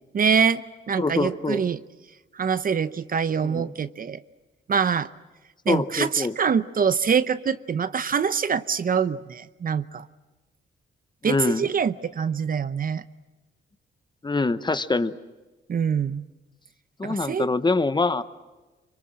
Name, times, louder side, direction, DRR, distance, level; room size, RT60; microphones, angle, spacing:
voice 1, 0.1-1.8 2.3-4.2 4.7-5.1 5.7-10.1 11.2-13.0 15.7-16.2 17.0-17.5, right 6 dB, 45° right, 14 dB, 0.8 m, -24 dB
voice 2, 1.0-1.6 3.4-3.7 5.7-6.4 11.2-11.6 14.2-15.2 17.0-18.2, left 3 dB, 20° left, 12 dB, 1.0 m, -24 dB
26.5 x 24.5 x 7.6 m, 1.2 s
cardioid pair, 110°, 20 cm